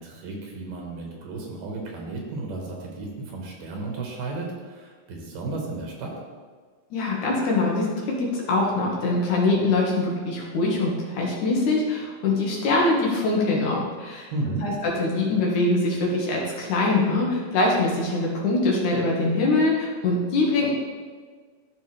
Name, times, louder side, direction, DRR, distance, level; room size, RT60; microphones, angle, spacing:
voice 1, 0.0-6.1 14.3-14.7, right 3 dB, 75° right, -1 dB, 2.9 m, -33 dB
voice 2, 6.9-14.3 14.6-20.7, left 2 dB, 65° left, -3 dB, 2.8 m, -23 dB
13.5 x 5.3 x 3.3 m, 1.5 s
omnidirectional pair, 3.9 m